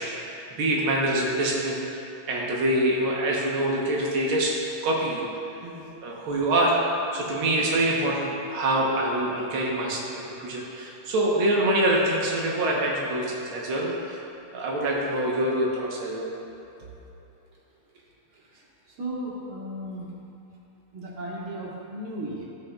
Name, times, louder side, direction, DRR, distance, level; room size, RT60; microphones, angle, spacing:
voice 1, 0.0-1.8 2.3-4.6 4.8-5.3 6.0-6.8 7.1-14.2 14.5-16.3, right 1 dB, 90° right, -3 dB, 1.1 m, -25 dB
voice 2, 19.0-20.1 20.9-22.4, right 1 dB, 50° right, -5 dB, 1.7 m, -35 dB
15.5 x 6.9 x 2.3 m, 2.9 s
omnidirectional pair, 3.9 m